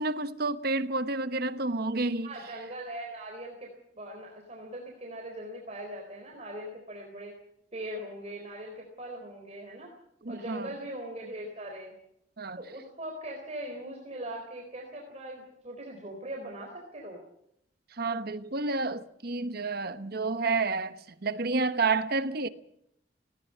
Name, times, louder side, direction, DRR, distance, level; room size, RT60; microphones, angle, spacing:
voice 1, 0.0-2.3 10.2-10.7 12.4-12.6 18.0-22.5, right 3 dB, 60° right, 1.1 m, -30 dB
voice 2, 2.2-7.4 7.7-9.9 10.3-11.9 12.6-17.2, right 1 dB, 35° right, 4.0 m, -40 dB
19.0 x 17.5 x 8.6 m
head